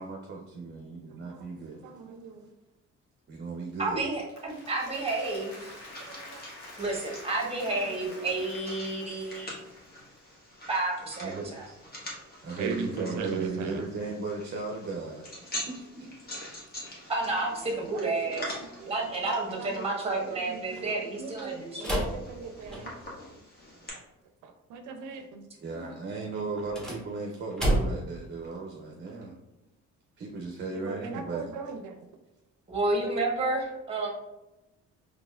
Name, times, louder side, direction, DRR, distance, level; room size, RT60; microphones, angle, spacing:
voice 1, 0.0-1.9 3.3-4.1 6.8-7.0 11.2-11.8 12.4-15.3 15.6-16.1 20.6-20.8 25.6-29.4 30.2-31.5, right 4 dB, 35° right, 0 dB, 0.6 m, -36 dB
voice 2, 1.1-2.5 5.4-5.5 6.1-6.4 7.4-8.0 12.6-13.8 17.4-17.5 17.9-18.9 19.5-22.9 23.3-23.4 23.8-24.0 24.4-25.4 25.7-25.9 29.2-29.3 30.7-32.1, right 5 dB, 80° right, 5 dB, 0.5 m, -40 dB
voice 3, 3.8-5.7 6.8-9.6 10.7-11.7 17.1-18.4 18.9-22.0 32.7-34.1, right 2 dB, 20° right, -1 dB, 1.1 m, -30 dB
Applause, 4.1-10.3, left 1 dB, 65° left, 1.3 m, -48 dB
sound 1, 4.9-23.9, left 1 dB, 30° left, 1.3 m, -45 dB
sound 2, 21.8-23.2 26.5-28.2, right 1 dB, ahead, 1.1 m, -30 dB
4.0 x 3.0 x 2.3 m, 0.96 s
cardioid pair, 90°, 30 cm